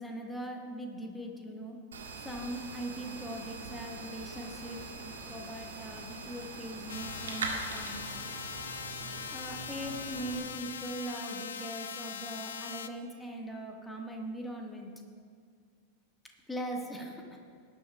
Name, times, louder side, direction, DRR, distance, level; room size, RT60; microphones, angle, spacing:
voice 1, 0.0-1.8 2.2-8.0 9.3-14.9 16.5-17.2, right 1 dB, 5° left, 0 dB, 1.7 m, -40 dB
sound 1, 1.9-10.4, right 4 dB, 65° right, 1.7 m, -42 dB
sound 2, 6.9-12.9, left 7 dB, 65° left, 0.5 m, -41 dB
18.5 x 11.0 x 2.4 m, 2.1 s
figure-of-eight pair, 90°, 0 cm